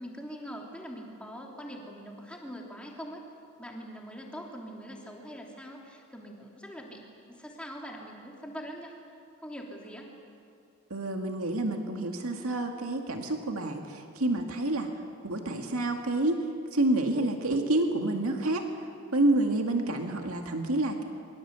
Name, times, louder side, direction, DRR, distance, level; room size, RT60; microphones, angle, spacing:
voice 1, 0.0-3.2 3.6-7.0 7.3-9.0 9.4-10.1 15.5-15.9, equal, 5° left, -1 dB, 3.1 m, -43 dB
voice 2, 10.9-14.9 15.2-16.4 16.7-18.7 19.1-21.0, right 2 dB, 75° right, 3 dB, 2.1 m, -28 dB
26.5 x 23.5 x 8.2 m, 2.5 s
head